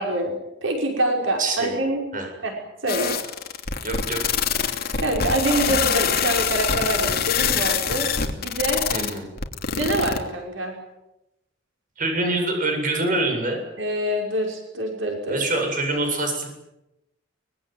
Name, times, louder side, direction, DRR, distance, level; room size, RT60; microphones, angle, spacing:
voice 1, 0.0-2.0 2.4-2.5 2.8-3.1 5.0-8.8 9.7-10.8 13.8-15.4, right 1 dB, 85° right, 2 dB, 5.6 m, -25 dB
voice 2, 1.4-1.8 2.1-2.3 3.8-4.3 8.9-9.3 12.0-13.6 15.3-16.5, right 2 dB, 45° right, 4 dB, 7.9 m, -25 dB
sound 1, 2.9-10.2, left 7 dB, 55° left, 3.0 m, -24 dB
24.5 x 22.0 x 9.5 m, 0.92 s
head